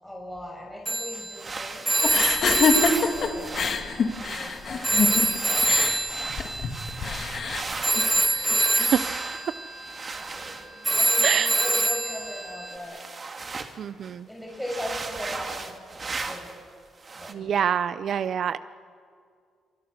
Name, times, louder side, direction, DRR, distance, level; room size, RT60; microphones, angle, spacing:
voice 1, 0.0-5.2 5.4-6.5 7.0-7.8 10.1-13.0 14.3-16.5 17.1-17.6, left 1 dB, 5° left, -2 dB, 6.5 m, -40 dB
Telephone, 0.9-4.5 4.8-12.8, right 2 dB, 15° right, 1.9 m, -26 dB
sound 1, 1.1-8.2 8.8-13.8 14.0-14.1 14.5-16.6 17.0-17.3, right 4 dB, 35° right, 2.2 m, -38 dB
sound 2, 2.0-8.9, left 5 dB, 55° left, 2.5 m, -27 dB
voice 2, 8.8-9.1 11.2-11.5 13.8-14.3 17.3-18.6, right 8 dB, 60° right, 14 dB, 0.6 m, -26 dB
28.0 x 24.5 x 6.8 m, 2.2 s
cardioid pair, 90°, 0 cm